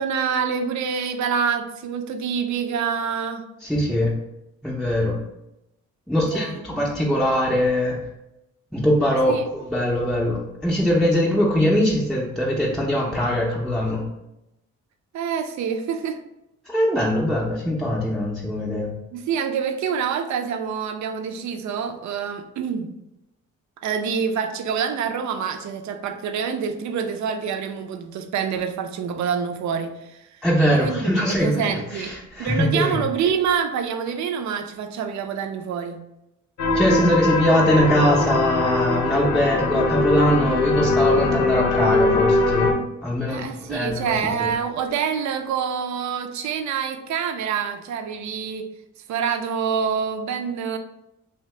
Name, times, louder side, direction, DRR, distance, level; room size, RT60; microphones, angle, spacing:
voice 1, 0.0-3.5 6.2-6.8 9.3-9.5 15.1-16.2 19.1-22.9 23.8-30.4 30.7-32.1 32.4-36.0 43.3-48.7 49.1-50.8, right 7 dB, 65° right, 6 dB, 0.5 m, -26 dB
voice 2, 3.6-4.1 4.6-5.2 6.1-8.0 8.7-14.0 16.7-18.9 30.4-33.0 36.7-44.5, equal, ahead, -5 dB, 0.5 m, -22 dB
sound 1, 36.6-42.7, left 2 dB, 60° left, 0.6 m, -21 dB
2.8 x 2.7 x 3.2 m, 0.87 s
cardioid pair, 90°, 30 cm